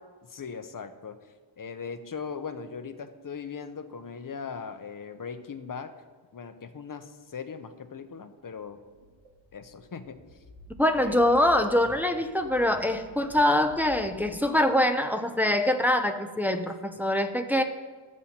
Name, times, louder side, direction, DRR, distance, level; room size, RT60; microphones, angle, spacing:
voice 1, 0.2-1.2 1.6-5.9 6.3-8.8 9.5-10.4 10.9-11.2 16.9-17.0, left 6 dB, 45° left, 9 dB, 0.6 m, -39 dB
sound 1, 8.6-14.3, equal, 75° right, 1.9 m, -50 dB
voice 2, 10.8-17.6, left 1 dB, 5° right, 6 dB, 0.4 m, -24 dB
13.5 x 7.3 x 2.8 m, 1.4 s
wide cardioid pair, 80°, 47 cm